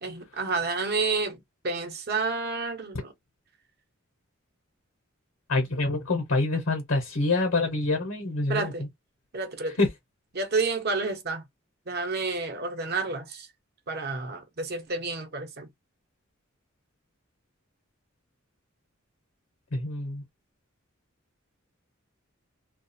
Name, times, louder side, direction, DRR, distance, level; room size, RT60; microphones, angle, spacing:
voice 1, 0.0-3.1 8.5-8.9 9.3-9.8 10.3-11.4 11.9-13.5 13.9-15.7, right 3 dB, 50° right, 0.9 m, -30 dB
voice 2, 5.5-8.7 9.8-9.9 19.7-20.2, left 2 dB, 70° left, 0.9 m, -26 dB
2.4 x 2.3 x 2.7 m
head